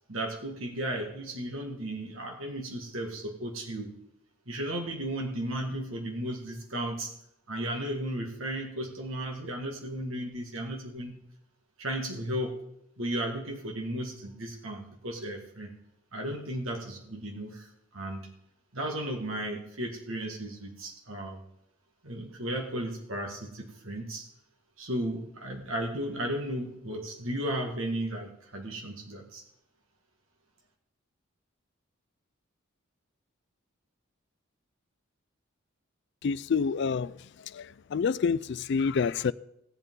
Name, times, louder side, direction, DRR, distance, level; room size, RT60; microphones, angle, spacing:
voice 1, 0.1-3.9 4.5-7.1 7.5-11.2 11.8-12.6 13.0-15.7 16.1-18.3 18.7-21.4 22.0-24.3 24.8-29.4, right 1 dB, 70° right, 1.9 m, -35 dB
voice 2, 36.2-37.2 37.5-39.3, left 5 dB, 55° left, 0.3 m, -28 dB
17.0 x 8.1 x 3.8 m
head